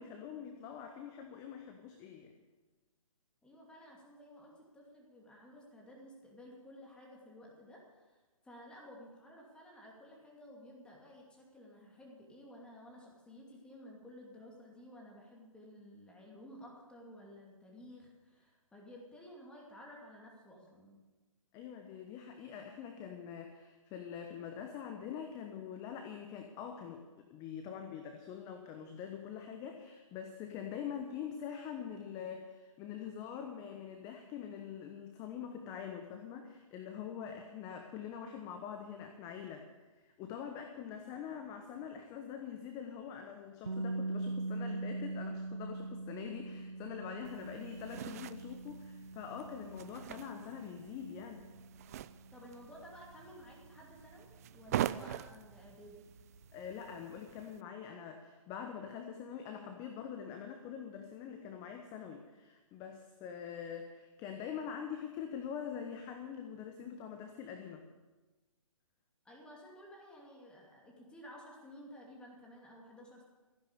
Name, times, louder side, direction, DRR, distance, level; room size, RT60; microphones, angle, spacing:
voice 1, 0.0-2.3 21.5-39.8 40.0-51.5 56.5-67.8, left 8 dB, 20° left, 5 dB, 1.0 m, -44 dB
voice 2, 3.4-21.0 52.3-56.1 69.2-73.3, equal, 5° left, -2 dB, 2.5 m, -54 dB
sound 1, 43.6-55.5, right 2 dB, 90° right, 0.9 m, -43 dB
sound 2, 47.2-57.6, right 12 dB, 30° right, 0.4 m, -44 dB
15.5 x 10.5 x 6.8 m, 1.2 s
figure-of-eight pair, 140°, 17 cm